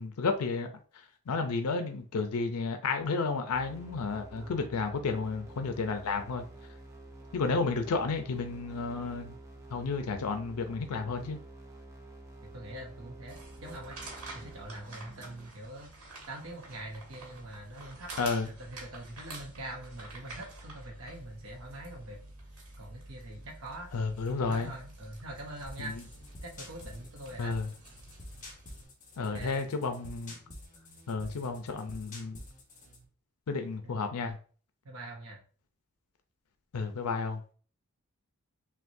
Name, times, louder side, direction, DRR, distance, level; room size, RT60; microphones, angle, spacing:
voice 1, 0.0-6.4 7.3-9.3 9.7-11.4 18.2-18.5 23.9-24.7 25.8-26.0 27.4-27.7 29.2-30.4 31.1-32.4 33.5-34.4 36.7-37.4, left 4 dB, 85° left, 0.5 m, -32 dB
sound 1, 3.5-15.5, right 1 dB, 15° right, 0.6 m, -49 dB
voice 2, 4.4-4.7 12.4-14.0 14.3-15.9 16.3-18.1 18.4-22.2 22.8-23.9 24.4-26.0 26.4-27.6 29.2-29.7 31.1-31.4 33.8-34.3 34.8-35.4, right 1 dB, 65° right, 0.8 m, -44 dB
sound 2, 13.3-28.8, right 2 dB, 80° right, 1.4 m, -49 dB
sound 3, 25.7-33.0, left 1 dB, 35° left, 1.1 m, -49 dB
5.9 x 2.2 x 2.6 m
head